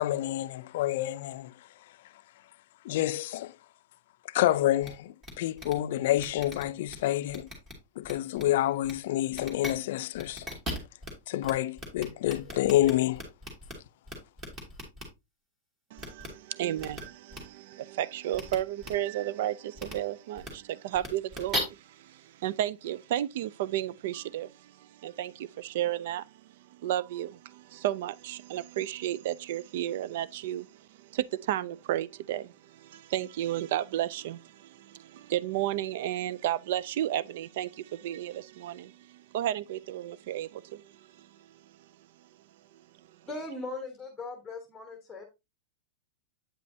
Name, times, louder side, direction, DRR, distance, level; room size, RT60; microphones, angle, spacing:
voice 1, 0.0-1.7 2.8-3.5 4.2-7.5 8.0-10.5 11.3-13.2, left 14 dB, 55° left, 0.5 m, -28 dB
sound 1, 4.8-4.9 5.2-5.3 5.6-5.7 6.2-6.9 7.3-7.7 8.0-8.4 8.8-8.9 9.3-9.7 10.1-11.1 11.4-11.5 11.8-13.7 14.1-15.0 16.0-16.3 16.8-17.0 17.3-17.4 18.3-18.5 18.8-18.9 19.8-19.9 20.4-20.5 20.9-21.6, equal, 15° right, 2.3 m, -37 dB
voice 2, 15.9-26.3 26.7-41.6, right 12 dB, 55° right, 0.4 m, -33 dB
voice 3, 43.3-45.3, left 2 dB, 5° left, 1.2 m, -39 dB
8.7 x 5.3 x 2.8 m
supercardioid pair, 165°, 0 cm